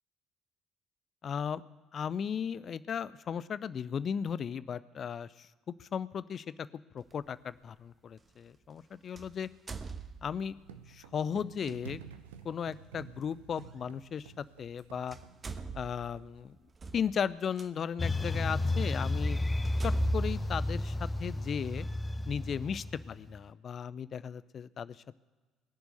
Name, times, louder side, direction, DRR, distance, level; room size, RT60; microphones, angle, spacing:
voice 1, 1.2-1.6 1.9-5.5 5.8-6.4 6.9-9.5 10.2-10.5 10.9-12.0 12.4-15.2 15.7-16.6 16.9-19.4 19.8-21.9 22.3-25.2, left 7 dB, 45° left, 18 dB, 0.6 m, -36 dB
sound 1, 7.1-7.2 9.1-10.6 11.6-11.8 13.6-13.7 14.7-14.8 15.1-17.7 18.3-18.4 18.9-19.0 19.6-21.4, right 5 dB, 30° right, 1.1 m, -44 dB
sound 2, 10.6-16.5, right 8 dB, 75° right, 0.8 m, -51 dB
sound 3, 18.0-23.4, left 1 dB, 20° left, 0.9 m, -32 dB
21.0 x 7.0 x 9.1 m, 1.3 s
figure-of-eight pair, 50°, 0 cm